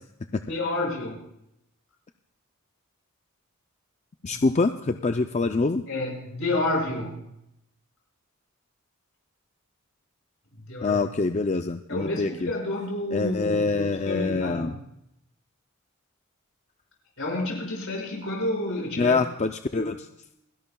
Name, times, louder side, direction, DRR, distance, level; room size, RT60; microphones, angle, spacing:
voice 1, 0.5-1.2 4.2-4.4 5.9-7.3 10.5-11.1 11.9-14.7 17.2-19.2 19.7-19.9, left 2 dB, 65° left, -1 dB, 5.8 m, -30 dB
voice 2, 4.2-5.8 10.8-12.5 13.1-14.7 19.0-20.0, left 3 dB, 30° left, 7 dB, 0.4 m, -25 dB
29.0 x 11.5 x 2.3 m, 0.79 s
head